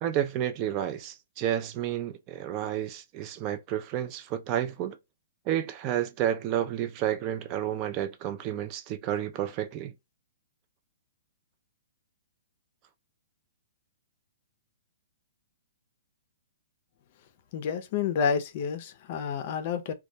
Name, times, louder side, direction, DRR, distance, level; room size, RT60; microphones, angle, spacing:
voice 1, 0.0-5.0 5.5-9.9, right 11 dB, 30° right, 0.3 m, -31 dB
voice 2, 17.5-19.9, left 6 dB, 45° left, 0.4 m, -29 dB
2.2 x 2.1 x 2.7 m
hypercardioid pair, 150°, 0 cm